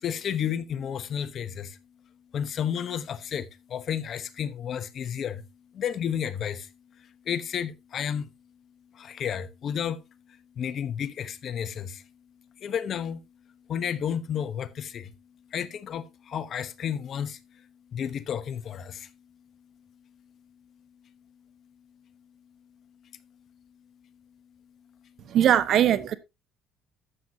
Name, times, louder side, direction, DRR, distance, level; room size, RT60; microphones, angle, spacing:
voice 1, 0.0-1.7 2.3-3.5 3.7-5.4 5.8-6.6 7.3-8.3 9.1-10.0 10.6-11.9 12.6-13.2 13.7-15.0 15.5-16.0 16.3-17.4 17.9-18.9, left 8 dB, 55° left, 0.9 m, -31 dB
voice 2, 25.3-26.2, right 10 dB, 60° right, 1.0 m, -20 dB
12.0 x 7.8 x 2.7 m
supercardioid pair, 90°, 0 cm